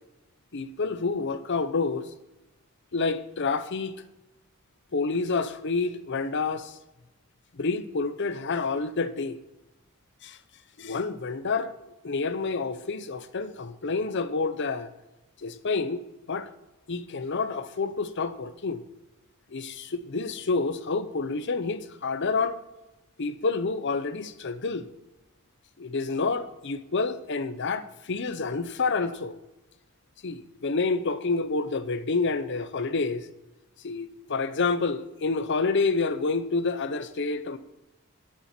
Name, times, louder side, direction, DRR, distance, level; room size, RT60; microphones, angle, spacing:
voice 1, 0.5-2.1 2.9-4.0 4.9-6.8 7.5-9.4 10.2-10.4 10.8-11.7 12.0-14.9 15.4-16.5 16.9-18.8 19.5-22.6 23.2-24.9 25.8-29.3 30.2-33.3 33.8-37.6, left 4 dB, 55° left, 0.7 m, -28 dB
10.0 x 8.4 x 5.9 m
head